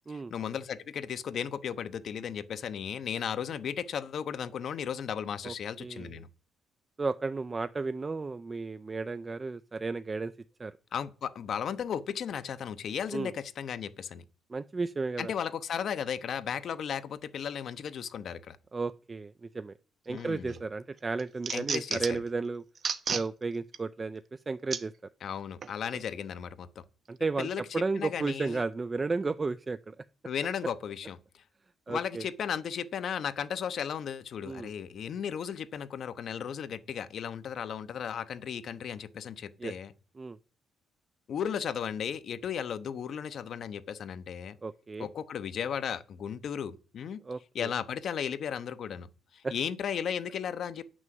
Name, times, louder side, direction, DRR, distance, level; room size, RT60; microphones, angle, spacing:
voice 1, 0.1-6.3 10.9-14.2 15.2-18.6 20.1-20.5 21.5-22.0 25.2-26.8 27.4-27.6 28.0-28.6 30.2-31.2 31.9-39.9 41.3-44.6 45.0-47.2 47.5-50.8, left 8 dB, 60° left, 0.8 m, -35 dB
voice 2, 5.8-6.2 7.0-10.3 10.6-10.8 13.1-13.3 14.5-15.3 18.7-19.7 20.1-22.6 23.1-25.1 27.1-30.0 31.9-32.3 34.4-34.7 39.6-39.7 40.2-40.4 44.6-45.1 47.2-47.7 49.4-49.5, right 3 dB, 25° right, 0.4 m, -33 dB
sound 1, 20.2-20.6 21.0-22.3 22.8-23.3 23.7-23.8 24.7-24.8 25.6-25.7, right 6 dB, 50° right, 1.0 m, -33 dB
9.0 x 6.2 x 7.6 m
cardioid pair, 90°, 0 cm